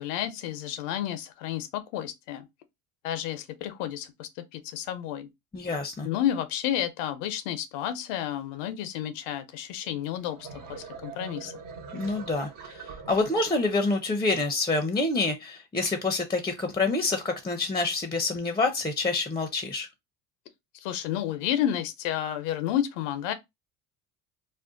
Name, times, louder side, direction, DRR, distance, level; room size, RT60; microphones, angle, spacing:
voice 1, 0.0-2.5 3.0-5.3 6.0-11.5 20.8-23.3, left 11 dB, 90° left, 0.7 m, -31 dB
voice 2, 5.5-6.1 11.9-19.9, left 3 dB, 10° left, 0.5 m, -27 dB
sound 1, 10.1-14.0, right 5 dB, 60° right, 1.0 m, -43 dB
2.5 x 2.2 x 3.7 m
supercardioid pair, 95°, 37 cm